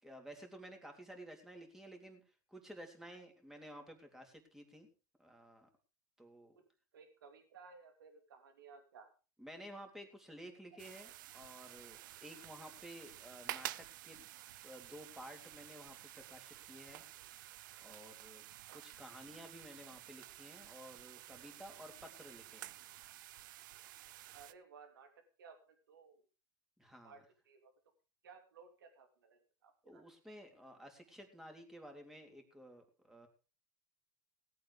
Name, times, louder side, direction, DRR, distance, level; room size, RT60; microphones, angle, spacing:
voice 1, 0.0-4.9 5.2-5.7 6.2-6.6 9.4-13.7 14.0-14.3 14.6-17.0 17.8-18.4 18.7-22.8 26.8-27.2 29.8-33.3, equal, 5° right, 4 dB, 3.4 m, -53 dB
voice 2, 6.9-9.1 24.3-25.1 25.4-26.2 27.0-27.7 28.2-30.0, right 5 dB, 90° right, 5 dB, 2.8 m, -58 dB
sound 1, 10.8-24.5, right 15 dB, 70° right, 0.7 m, -51 dB
17.5 x 8.7 x 5.0 m, 0.34 s
supercardioid pair, 120°, 11 cm